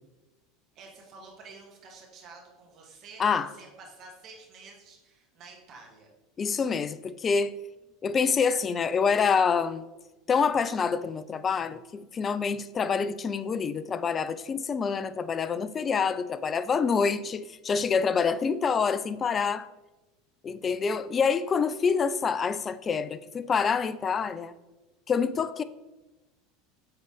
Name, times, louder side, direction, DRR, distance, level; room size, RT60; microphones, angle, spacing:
voice 1, 0.7-6.1, right 3 dB, 45° right, 1.9 m, -49 dB
voice 2, 6.4-7.5 8.0-9.9 10.3-19.7 20.4-24.5 25.1-25.6, left 5 dB, 30° left, 0.4 m, -26 dB
8.0 x 3.9 x 3.5 m
hypercardioid pair, 80°, 0 cm